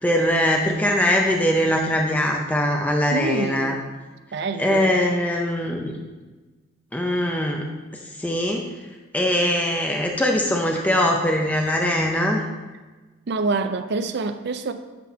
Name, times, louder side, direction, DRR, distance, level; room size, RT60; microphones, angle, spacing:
voice 1, 0.0-3.7 4.6-5.9 6.9-7.7 8.2-8.6 9.1-12.4, left 1 dB, 5° left, 1 dB, 0.5 m, -21 dB
voice 2, 3.1-3.8 4.3-5.1 13.3-14.7, right 3 dB, 50° right, 10 dB, 0.4 m, -26 dB
9.7 x 4.2 x 4.2 m, 1.3 s
head